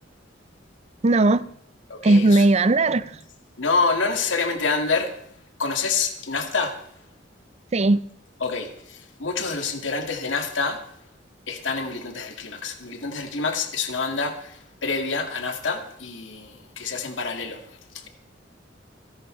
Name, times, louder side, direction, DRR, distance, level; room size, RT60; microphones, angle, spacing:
voice 1, 1.0-1.5 2.0-3.1 7.7-8.0, right 2 dB, 35° right, 0.5 m, -17 dB
voice 2, 1.9-2.5 3.6-5.2 5.6-6.8 8.4-10.8 11.5-18.1, left 4 dB, 80° left, 2.2 m, -27 dB
28.5 x 11.0 x 3.3 m
head